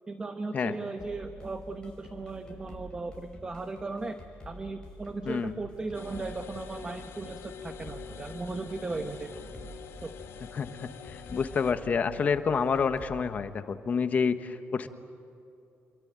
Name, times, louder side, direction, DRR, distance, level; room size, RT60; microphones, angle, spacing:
voice 1, 0.1-4.2 4.5-9.7 10.0-10.1, right 3 dB, 20° right, 8 dB, 1.0 m, -37 dB
sound 1, 1.0-13.2, equal, 20° left, 5.7 m, -48 dB
voice 2, 5.2-5.6 10.5-14.9, left 6 dB, 35° left, 9 dB, 1.3 m, -28 dB
sound 2, 5.9-11.7, left 7 dB, 75° left, 2.3 m, -46 dB
28.0 x 23.0 x 9.0 m, 2.8 s
cardioid pair, 155°, 4 cm